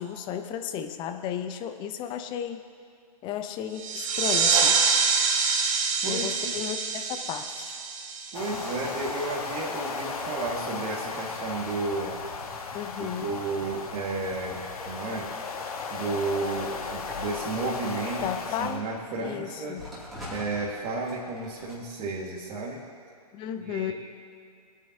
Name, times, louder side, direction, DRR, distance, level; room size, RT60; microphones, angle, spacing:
voice 1, 0.0-2.6 3.2-4.8 6.0-7.8 12.7-13.3 18.2-18.8 19.2-19.8 23.3-23.9, left 9 dB, 25° left, 7 dB, 0.7 m, -34 dB
sound 1, 3.8-9.1, right 5 dB, 55° right, 1.4 m, -26 dB
voice 2, 6.0-6.5 8.3-12.1 13.0-15.3 15.9-18.3 18.6-19.8 20.3-22.8 23.6-23.9, right 3 dB, 30° right, -5 dB, 1.8 m, -32 dB
sound 2, 8.3-18.8, left 5 dB, 70° left, 1.3 m, -36 dB
sound 3, 16.4-19.2 19.8-21.7, left 2 dB, ahead, 2.5 m, -43 dB
21.5 x 9.1 x 2.8 m, 2.3 s
figure-of-eight pair, 125°, 20 cm